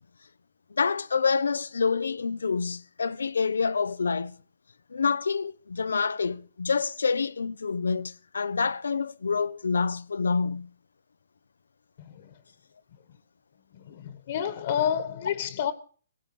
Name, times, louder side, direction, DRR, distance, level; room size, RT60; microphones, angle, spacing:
voice 1, 0.7-4.4 4.9-10.7, left 5 dB, 85° left, 0.7 m, -27 dB
voice 2, 12.0-12.3 13.7-15.7, left 9 dB, 50° left, 1.5 m, -29 dB
17.5 x 16.0 x 3.3 m
hypercardioid pair, 140°, 0 cm